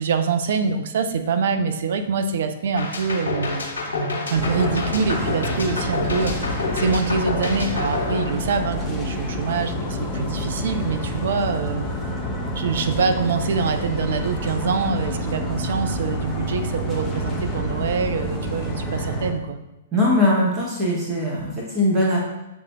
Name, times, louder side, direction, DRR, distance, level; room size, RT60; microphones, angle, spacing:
voice 1, 0.0-3.6 4.3-11.9 12.6-19.6, right 5 dB, 55° right, 8 dB, 0.4 m, -25 dB
sound 1, 2.8-9.0, left 3 dB, 70° left, 1.0 m, -28 dB
sound 2, 4.3-19.3, equal, 5° left, 0.7 m, -28 dB
voice 2, 19.9-22.2, left 1 dB, 20° right, -5 dB, 0.9 m, -20 dB
7.0 x 2.5 x 2.2 m, 0.97 s
figure-of-eight pair, 110°, 0 cm